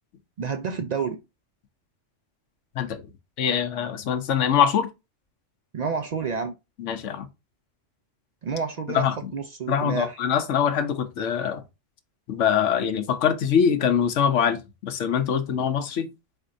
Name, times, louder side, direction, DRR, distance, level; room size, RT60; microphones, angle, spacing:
voice 1, 0.4-1.2 5.7-6.5 8.4-10.2, right 5 dB, 70° right, 0.4 m, -29 dB
voice 2, 3.4-4.9 6.8-7.3 8.9-9.1 9.7-11.6 12.3-16.1, left 8 dB, 75° left, 1.0 m, -23 dB
4.4 x 4.3 x 2.6 m
omnidirectional pair, 1.3 m